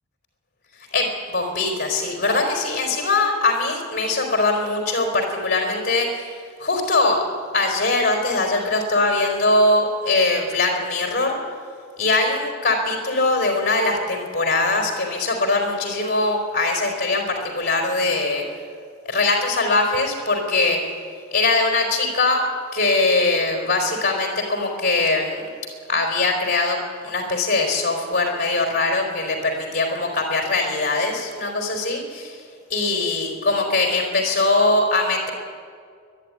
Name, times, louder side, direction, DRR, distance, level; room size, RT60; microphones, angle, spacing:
voice 1, 0.9-7.2 7.5-11.4 12.0-18.4 19.1-20.8 21.3-22.4 22.7-25.5 25.9-26.8 27.0-32.4 32.7-35.3, left 2 dB, 40° left, 1 dB, 4.1 m, -21 dB
22.5 x 11.5 x 9.9 m, 2.1 s
head